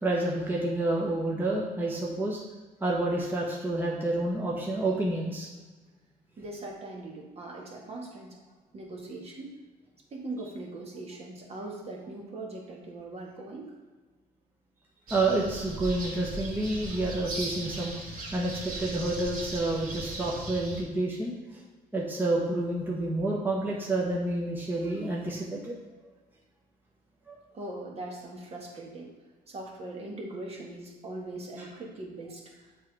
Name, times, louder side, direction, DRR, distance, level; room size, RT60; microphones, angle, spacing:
voice 1, 0.0-2.4 2.8-5.5 15.1-17.9 18.3-21.4 21.9-25.8 27.3-27.4 31.6-31.7, right 2 dB, 10° right, -4 dB, 1.0 m, -29 dB
voice 2, 6.4-8.4 8.7-9.6 10.1-13.7 27.5-29.1 29.5-32.4, right 2 dB, 35° right, -1 dB, 1.3 m, -40 dB
sound 1, 15.1-20.8, right 2 dB, 60° right, 1.8 m, -38 dB
7.4 x 3.2 x 4.8 m, 1.3 s
cardioid pair, 110°, 17 cm